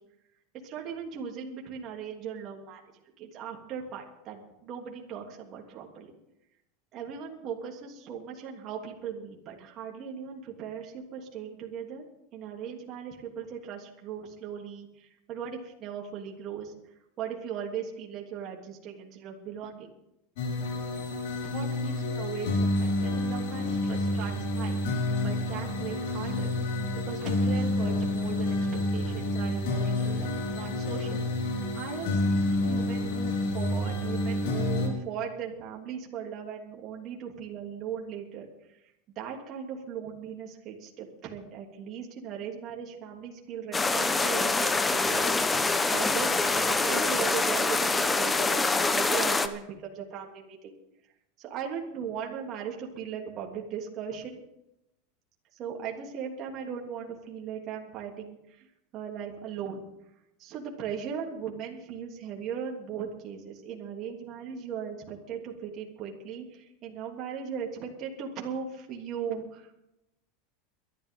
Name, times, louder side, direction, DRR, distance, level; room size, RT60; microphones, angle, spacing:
voice 1, 0.6-2.8 3.2-6.1 6.9-12.1 12.3-16.7 17.2-19.9 21.2-26.5 27.0-28.6 28.9-38.5 39.1-50.7 51.4-54.4 55.6-58.7 58.9-59.8 60.4-69.8, right 7 dB, 45° right, -1 dB, 3.0 m, -38 dB
sound 1, 20.4-34.9, left 2 dB, 75° left, 5.0 m, -29 dB
sound 2, 43.7-49.5, left 3 dB, 15° left, 1.1 m, -25 dB
23.0 x 12.0 x 3.8 m, 0.86 s
supercardioid pair, 125°, 0 cm